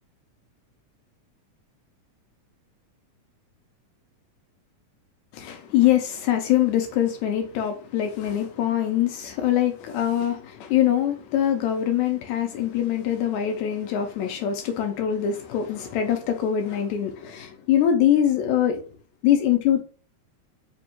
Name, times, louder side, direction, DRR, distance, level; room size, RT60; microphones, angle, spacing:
voice 1, 5.3-18.8 19.2-19.8, left 10 dB, 80° left, 5 dB, 1.8 m, -23 dB
5.0 x 2.3 x 2.9 m, 0.38 s
omnidirectional pair, 3.6 m